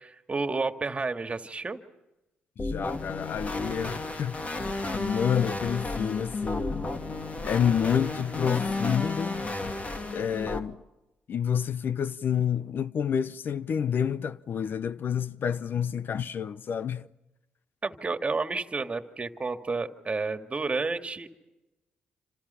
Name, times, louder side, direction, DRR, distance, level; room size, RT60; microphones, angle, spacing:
voice 1, 0.0-1.8 17.8-21.3, right 3 dB, 35° right, 2.1 m, -31 dB
voice 2, 2.6-4.4 4.9-6.8 7.4-9.4 10.1-10.8 11.3-17.1, left 8 dB, 60° left, 0.8 m, -29 dB
sound 1, 2.6-10.6, left 2 dB, 35° left, 2.6 m, -32 dB
27.5 x 27.0 x 5.7 m
supercardioid pair, 50°, 4 cm